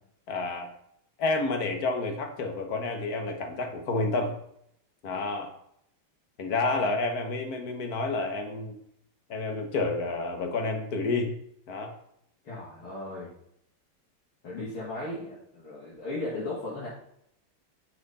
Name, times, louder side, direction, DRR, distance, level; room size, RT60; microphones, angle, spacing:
voice 1, 0.3-0.7 1.2-4.4 5.0-5.5 6.4-8.8 9.3-11.3 11.7-11.9, left 3 dB, 50° left, 4 dB, 1.6 m, -29 dB
voice 2, 12.4-13.3 14.4-16.9, left 2 dB, 75° left, -8 dB, 3.1 m, -36 dB
9.6 x 6.1 x 4.2 m, 0.72 s
omnidirectional pair, 2.3 m